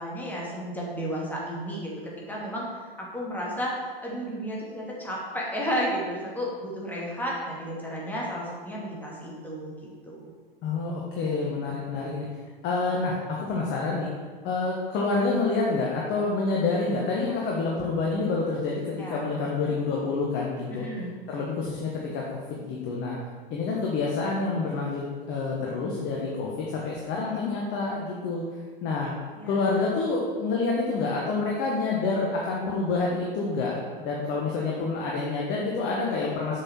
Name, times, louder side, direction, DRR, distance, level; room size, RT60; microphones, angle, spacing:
voice 1, 0.0-10.3 19.0-19.3 20.7-21.1 29.4-29.8, equal, 5° left, -4 dB, 2.1 m, -33 dB
voice 2, 10.6-12.3 12.6-14.1 14.4-18.8 19.1-20.9 21.3-23.2 23.5-25.0 25.3-28.4 28.8-29.1 29.5-36.6, left 3 dB, 40° left, -3 dB, 1.3 m, -28 dB
6.7 x 5.8 x 4.4 m, 1.5 s
figure-of-eight pair, 90°, 29 cm